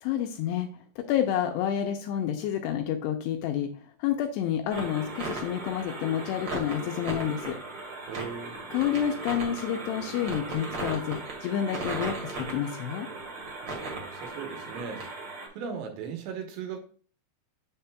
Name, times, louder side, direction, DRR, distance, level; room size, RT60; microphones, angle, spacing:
voice 1, 0.0-3.7 4.0-7.6 8.7-13.1, left 10 dB, 80° left, 2.5 m, -29 dB
sound 1, 4.7-15.5, right 2 dB, 55° right, 1.2 m, -37 dB
voice 2, 8.1-8.6 13.6-15.0 15.6-16.8, right 6 dB, 75° right, 3.2 m, -38 dB
7.4 x 7.1 x 2.2 m
omnidirectional pair, 5.2 m